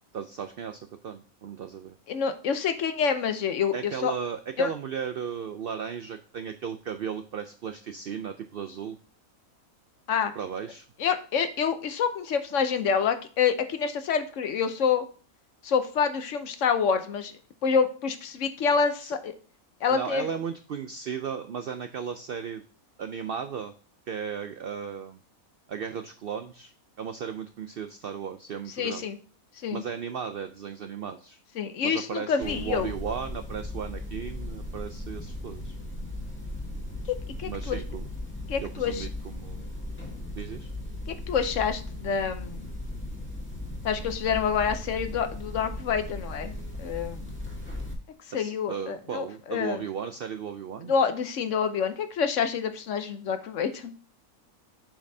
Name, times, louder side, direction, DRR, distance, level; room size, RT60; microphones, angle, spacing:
voice 1, 0.1-2.0 3.7-9.0 10.4-10.8 19.0-19.1 19.9-22.6 23.0-23.7 24.1-25.2 25.7-29.1 29.7-31.4 31.8-35.8 37.4-38.1 38.6-39.7 40.3-40.7 48.3-50.9, right 7 dB, 75° right, 8 dB, 0.5 m, -35 dB
voice 2, 2.1-4.1 4.6-4.7 10.1-10.3 11.0-15.0 15.6-17.3 17.6-19.3 19.8-20.3 28.8-29.2 29.6-29.8 31.6-32.9 37.4-37.8 38.5-39.1 41.3-42.7 43.8-46.5 46.8-47.3 48.3-49.8 50.9-53.9, left 6 dB, 60° left, 9 dB, 1.0 m, -27 dB
sound 1, 32.4-47.9, left 1 dB, 10° left, 1.4 m, -37 dB
7.4 x 5.3 x 2.7 m, 0.39 s
omnidirectional pair, 1.5 m